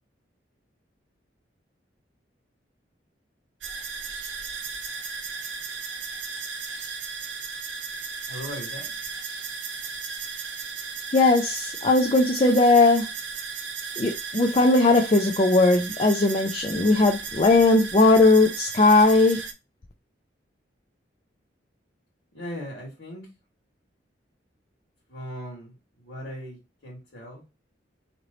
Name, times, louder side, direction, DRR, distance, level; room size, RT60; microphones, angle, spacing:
sound 1, 3.6-19.5, right 5 dB, 85° right, 0.8 m, -35 dB
voice 1, 8.3-8.9 22.3-23.3 25.1-27.4, equal, 90° left, 1.6 m, -38 dB
voice 2, 11.1-13.1 14.0-19.4, left 2 dB, 30° left, 0.4 m, -19 dB
3.1 x 3.0 x 3.8 m
head